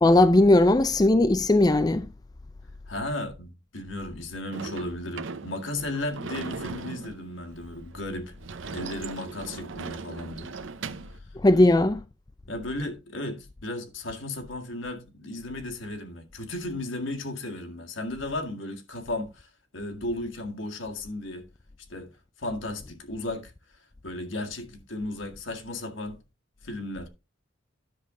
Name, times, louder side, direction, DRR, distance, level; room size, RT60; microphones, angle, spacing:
voice 1, 0.0-2.1 11.4-12.0, left 2 dB, 20° left, 0.4 m, -18 dB
voice 2, 2.9-8.3 8.7-10.5 12.5-21.5 21.9-22.1 22.4-23.5 24.0-26.2 26.6-27.1, left 2 dB, 75° left, 1.9 m, -35 dB
Sliding door / Slam, 4.5-11.2, right 4 dB, 75° right, 0.7 m, -39 dB
10.5 x 6.9 x 3.7 m
head